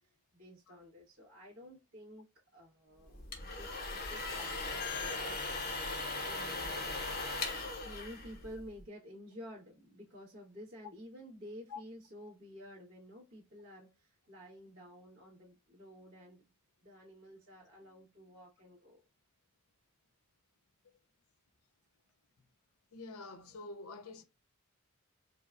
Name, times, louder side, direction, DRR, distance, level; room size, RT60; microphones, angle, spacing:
voice 1, 0.3-2.3 2.5-5.5 6.2-7.0 7.8-16.5 16.8-19.0, equal, 70° right, 1.4 m, -52 dB
sound 1, 3.1-8.8, left 3 dB, 45° left, 0.8 m, -38 dB
voice 2, 22.9-24.2, left 3 dB, 85° left, 0.6 m, -46 dB
4.9 x 2.2 x 2.5 m
head